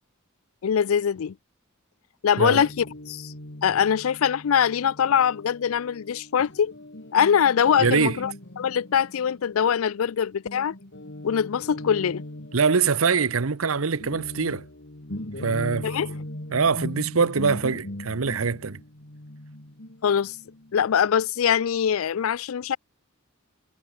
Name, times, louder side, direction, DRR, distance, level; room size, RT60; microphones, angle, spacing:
voice 1, 0.6-1.3 2.2-3.3 3.6-6.7 7.1-10.7 11.2-12.2 15.8-16.1 20.0-20.4 20.7-22.8, left 8 dB, 80° left, 0.4 m, -23 dB
Guitar, 2.4-10.1 10.4-20.9, left 1 dB, 60° left, 3.0 m, -40 dB
voice 2, 7.8-8.2 12.5-14.7 15.4-15.9 16.5-18.8, right 5 dB, 80° right, 0.9 m, -23 dB
head